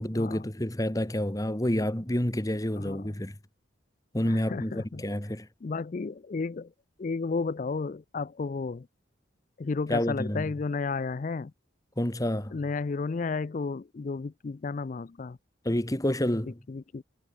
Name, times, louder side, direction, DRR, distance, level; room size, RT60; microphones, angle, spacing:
voice 1, 0.0-3.3 4.1-5.5 9.9-10.5 12.0-12.5 15.6-16.6, left 1 dB, 20° left, 1.5 m, -29 dB
voice 2, 2.8-3.1 4.2-5.0 5.6-6.7 7.0-8.9 9.6-11.5 12.5-15.4 16.7-17.0, left 4 dB, 40° left, 0.4 m, -33 dB
head